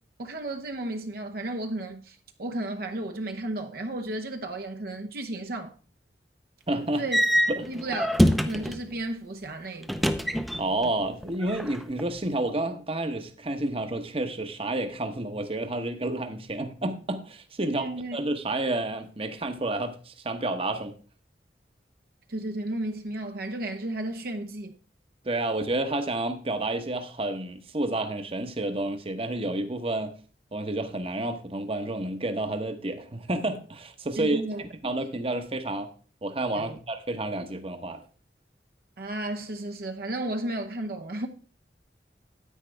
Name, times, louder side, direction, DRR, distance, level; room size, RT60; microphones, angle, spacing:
voice 1, 0.2-5.7 7.0-7.2 7.6-10.1 17.7-18.2 22.3-24.7 34.2-34.6 36.5-36.8 39.0-41.3, right 1 dB, 55° right, 0.8 m, -33 dB
voice 2, 6.7-7.1 7.5-7.7 10.6-21.0 25.2-30.1 30.5-34.4 34.8-35.9 36.2-38.0, right 2 dB, 35° right, 1.0 m, -30 dB
sound 1, 7.1-8.9 9.8-10.9 11.2-12.0, equal, ahead, 0.6 m, -24 dB
10.0 x 8.9 x 3.4 m
head